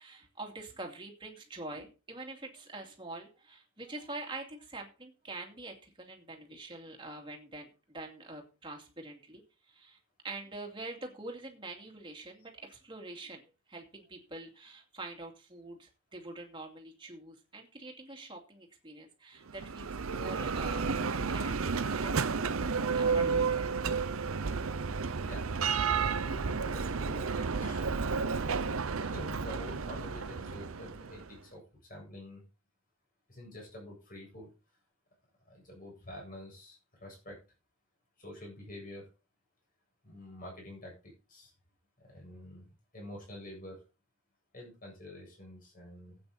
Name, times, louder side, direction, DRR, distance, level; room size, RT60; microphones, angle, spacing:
voice 1, 0.0-9.4 9.7-10.0 10.2-13.4 13.7-22.4 22.9-23.6, right 2 dB, 25° right, 1 dB, 2.5 m, -45 dB
Bell, 19.5-31.3, right 5 dB, 85° right, 0.8 m, -32 dB
voice 2, 25.9-27.9 29.0-32.4 33.3-34.5 35.4-37.4 38.2-39.1 40.0-41.5 42.0-43.8 44.5-46.2, left 1 dB, 40° left, -1 dB, 8.0 m, -47 dB
13.0 x 8.7 x 4.2 m, 0.32 s
head